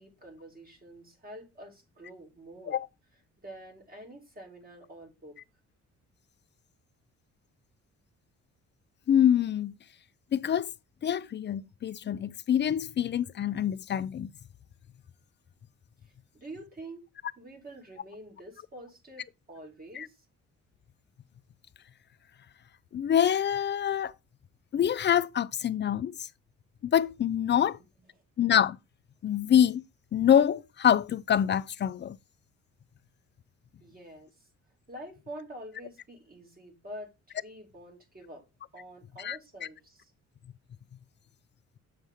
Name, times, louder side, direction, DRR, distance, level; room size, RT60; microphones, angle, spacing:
voice 1, 0.0-2.8 3.4-5.4 16.0-17.1 17.4-20.3 27.6-27.7 28.1-28.2 33.8-34.5 34.9-37.1 37.4-38.4 38.7-40.1, right 1 dB, 30° right, 2.5 m, -47 dB
voice 2, 9.1-9.7 10.3-10.7 11.0-14.3 20.0-20.1 22.9-24.1 24.7-26.1 26.9-27.8 28.4-28.8 29.2-29.8 30.1-32.2 39.2-39.4, left 9 dB, 35° left, 0.4 m, -25 dB
7.7 x 5.5 x 3.5 m
cardioid pair, 90°, 30 cm